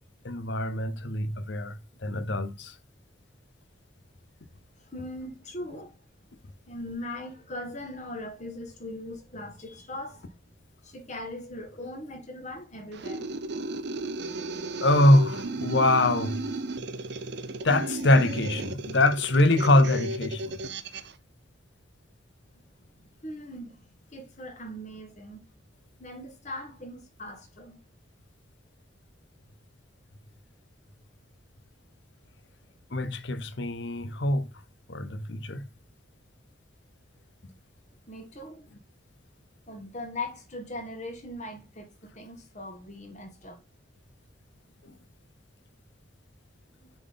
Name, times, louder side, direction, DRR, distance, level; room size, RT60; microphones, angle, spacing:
voice 1, 0.2-2.7 14.8-16.4 17.6-20.5 32.9-34.5 34.9-35.6 44.8-44.9, left 1 dB, 60° left, 0.8 m, -24 dB
voice 2, 4.8-6.0 6.6-10.4 10.8-13.6 22.5-25.4 26.0-27.8 38.1-38.7 39.7-43.6, left 1 dB, 35° left, 1.6 m, -40 dB
sound 1, 12.9-21.1, right 2 dB, 55° right, 0.6 m, -35 dB
6.9 x 3.8 x 3.9 m
head